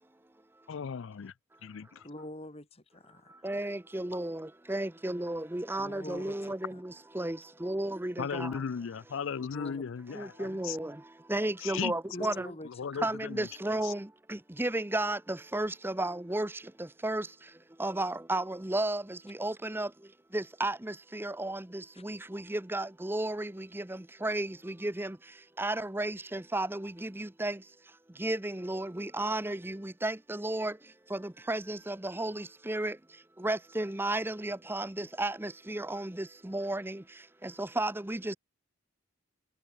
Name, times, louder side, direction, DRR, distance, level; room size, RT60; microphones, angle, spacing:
voice 1, 0.7-1.3 1.6-2.1 8.2-10.8 11.6-12.3 12.6-13.5 13.8-13.9, left 6 dB, 65° left, 0.4 m, -37 dB
voice 2, 2.0-3.4 5.8-6.3 6.7-6.8 9.5-9.8 12.1-12.7 12.9-13.1 21.9-22.0, left 1 dB, 30° left, 3.6 m, -44 dB
voice 3, 3.4-4.4 4.7-6.7 7.2-7.4 7.6-8.5 10.2-10.9 11.3-12.5 13.0-14.0 14.6-15.2 15.5-16.5 17.0-17.2 17.8-19.0 19.4-19.9 20.3-20.7 21.1-21.6 22.0-23.5 24.2-24.5 24.8-25.1 25.6-27.5 28.2-30.7 31.5-32.9 33.4-36.1 36.5-37.0 37.6-38.4, right 1 dB, 10° right, 0.7 m, -33 dB
head